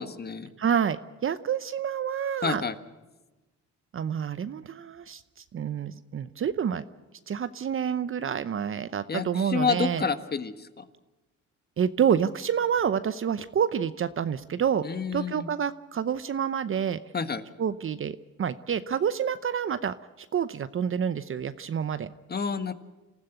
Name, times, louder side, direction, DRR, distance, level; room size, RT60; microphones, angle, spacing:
voice 1, 0.0-0.5 2.4-2.8 9.1-10.8 14.8-15.5 17.1-17.4 22.3-22.7, left 5 dB, 30° left, 10 dB, 1.6 m, -29 dB
voice 2, 0.6-2.6 3.9-5.2 5.5-6.8 7.3-10.0 11.8-14.8 15.1-17.0 17.6-22.1, right 8 dB, 45° right, 13 dB, 0.8 m, -28 dB
27.5 x 15.0 x 8.1 m, 1.1 s
cardioid pair, 90°, 30 cm